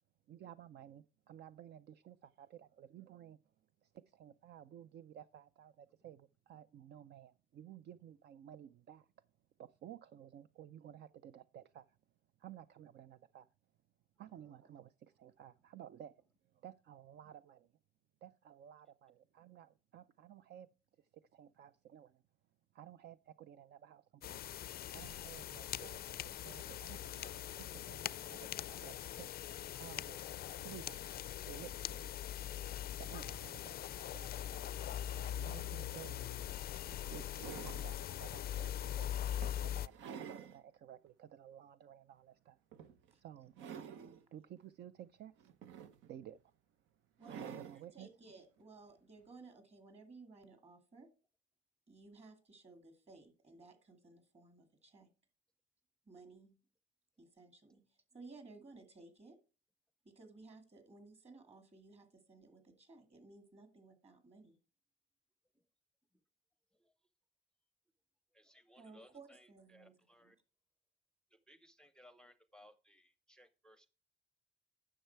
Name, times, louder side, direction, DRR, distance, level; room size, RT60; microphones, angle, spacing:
voice 1, 0.3-3.4 3.8-9.1 9.6-11.9 12.4-13.5 14.2-16.1 16.5-17.7 18.2-20.7 21.0-22.2 22.7-24.5 24.9-29.3 29.7-30.2 30.6-31.1 31.4-32.1 32.9-34.8 35.3-36.5 37.1-39.1 39.6-42.6 43.1-43.5 44.3-45.5 46.0-46.4 47.3-48.1, right 10 dB, 60° right, 0.4 m, -54 dB
voice 2, 14.3-14.8 47.3-47.4 47.7-47.8 65.5-65.6 66.7-67.1 68.3-70.4 71.3-73.9, left 1 dB, 5° left, 0.6 m, -64 dB
sound 1, 24.2-39.9, left 11 dB, 55° left, 0.4 m, -42 dB
sound 2, 36.2-36.3 36.9-38.0 38.6-38.8 39.4-40.6 41.1-41.2 42.7-43.1 43.5-44.2 45.4-46.3 47.2-47.8 49.2-49.3, right 7 dB, 85° right, 0.8 m, -49 dB
voice 3, 47.2-51.1 51.9-55.1 56.1-56.5 57.2-59.4 60.0-64.6 68.8-69.9 70.2-70.3, right 3 dB, 35° right, 2.2 m, -58 dB
10.0 x 6.5 x 4.5 m
cardioid pair, 100°, 19 cm